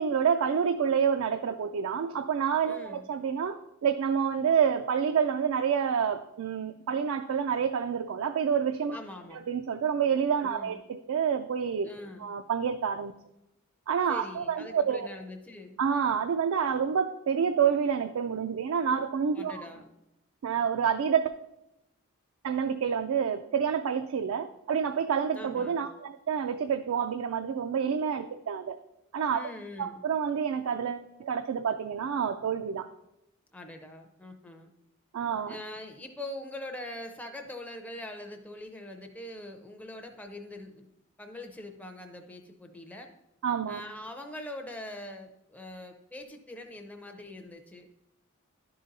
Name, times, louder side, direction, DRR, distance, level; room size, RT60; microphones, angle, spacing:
voice 1, 0.0-9.0 9.5-11.9 12.2-13.1 13.9-15.1 15.8-19.6 20.4-21.3 22.4-28.8 29.1-29.5 29.8-32.9 35.1-35.6 43.4-43.8, right 7 dB, 70° right, 8 dB, 0.3 m, -28 dB
voice 2, 2.6-3.1 8.9-9.4 10.4-10.8 11.8-12.3 14.1-15.8 19.3-19.9 25.3-25.8 29.3-30.0 33.5-34.7 35.5-40.9 41.2-43.1 43.7-47.9, left 1 dB, 5° left, 4 dB, 0.5 m, -43 dB
11.5 x 3.9 x 4.0 m, 0.88 s
head